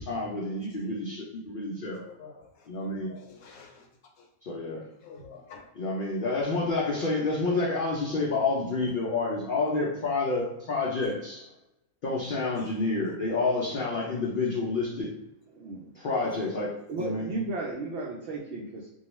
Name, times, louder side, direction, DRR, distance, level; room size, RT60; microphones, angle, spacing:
voice 1, 0.1-2.0 2.7-3.1 4.4-4.8 5.8-11.5 12.0-15.1 15.9-17.3, left 3 dB, 65° left, -4 dB, 0.5 m, -29 dB
voice 2, 2.1-3.9 4.2-4.3 5.0-5.7 12.6-12.7, left 5 dB, 85° left, 2 dB, 1.0 m, -49 dB
voice 3, 15.5-15.9 16.9-18.9, right 2 dB, 65° right, -4 dB, 0.7 m, -34 dB
2.3 x 2.3 x 3.0 m, 0.90 s
omnidirectional pair, 1.4 m